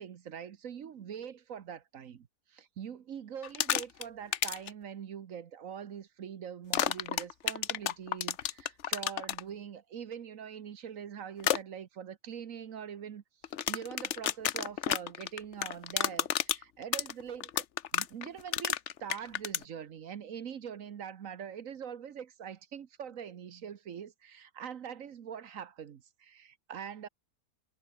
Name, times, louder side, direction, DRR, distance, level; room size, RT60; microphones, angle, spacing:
voice 1, 0.0-17.6 17.9-27.1, right 8 dB, 60° right, 1.3 m, -43 dB
sound 1, 3.4-4.0 4.3-4.7 6.7-9.4 11.4-11.6 13.4-19.6, left 10 dB, 55° left, 1.0 m, -30 dB
omnidirectional pair, 1.7 m